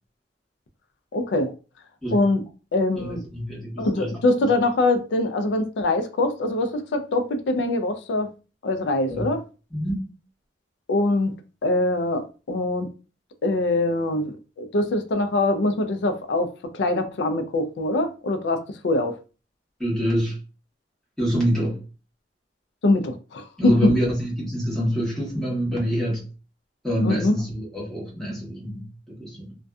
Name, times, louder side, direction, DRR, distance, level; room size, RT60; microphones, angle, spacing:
voice 1, 1.1-1.5 2.1-2.4 2.7-3.2 3.8-8.3 8.6-9.4 10.9-11.3 11.6-12.9 13.4-19.2 22.8-23.9 27.0-27.3, left 2 dB, 80° left, 0.4 m, -23 dB
voice 2, 3.0-4.1 9.1-9.2 9.7-10.1 19.8-20.4 21.2-21.8 23.6-26.3 26.8-29.6, equal, 5° left, 1.0 m, -26 dB
2.5 x 2.2 x 2.3 m
head